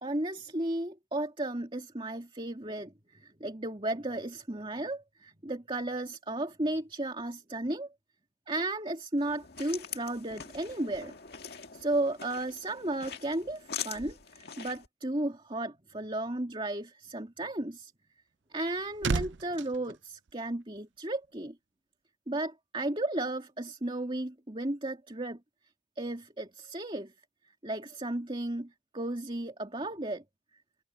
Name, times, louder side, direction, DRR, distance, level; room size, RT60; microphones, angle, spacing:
voice 1, 0.0-7.9 8.5-11.1 11.7-17.9 18.5-21.6 22.3-25.4 26.0-27.1 27.6-30.2, right 1 dB, 30° right, 2.4 m, -34 dB
sound 1, 9.2-14.9, left 8 dB, 55° left, 2.1 m, -43 dB
sound 2, 18.3-21.0 21.2-21.5, right 4 dB, 80° right, 0.6 m, -36 dB
head